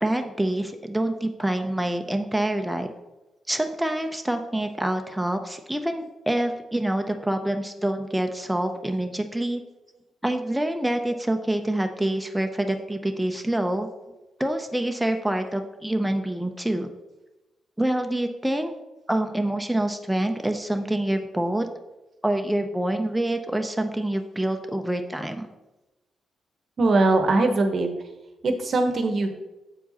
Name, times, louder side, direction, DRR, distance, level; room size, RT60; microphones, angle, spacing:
voice 1, 0.0-2.9 3.5-9.6 10.2-13.9 14.4-16.9 17.8-18.7 19.1-21.7 22.2-25.5, right 1 dB, 5° right, 5 dB, 0.7 m, -26 dB
voice 2, 26.8-27.9 28.4-29.4, right 2 dB, 55° right, 6 dB, 0.9 m, -21 dB
7.3 x 4.5 x 4.1 m, 1.0 s
hypercardioid pair, 45°, 0 cm